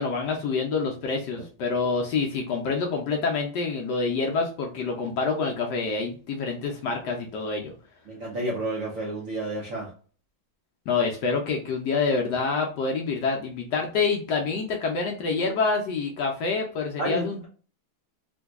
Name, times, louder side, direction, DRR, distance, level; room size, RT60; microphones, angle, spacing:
voice 1, 0.0-7.7 10.9-17.4, left 4 dB, 75° left, 1 dB, 1.0 m, -27 dB
voice 2, 8.1-9.9 17.0-17.4, right 1 dB, 65° right, -4 dB, 0.8 m, -31 dB
3.7 x 2.6 x 2.3 m, 0.40 s
omnidirectional pair, 2.3 m